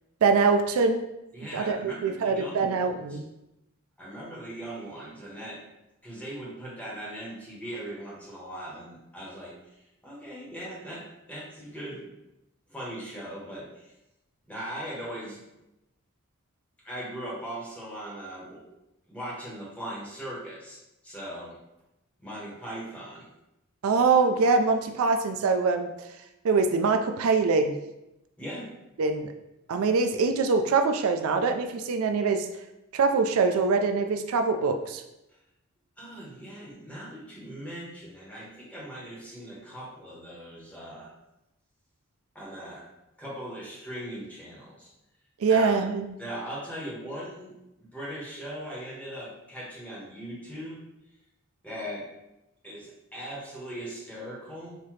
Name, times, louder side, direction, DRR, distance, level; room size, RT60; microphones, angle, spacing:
voice 1, 0.2-1.0 1.5-3.2 23.8-25.9 26.4-27.7 29.0-29.3 29.7-32.5 32.9-35.0 45.4-46.1, right 4 dB, 80° right, 6 dB, 0.4 m, -23 dB
voice 2, 1.3-3.2 4.0-5.6 6.0-12.1 12.7-13.9 14.5-15.4 16.8-18.6 19.1-20.8 21.0-21.6 22.2-23.3 28.4-28.7 36.0-41.1 42.3-42.8 43.2-44.9 45.4-45.7 46.2-50.8 51.6-52.1 52.6-54.8, right 1 dB, 5° left, -6 dB, 1.4 m, -39 dB
5.8 x 2.8 x 3.1 m, 0.91 s
head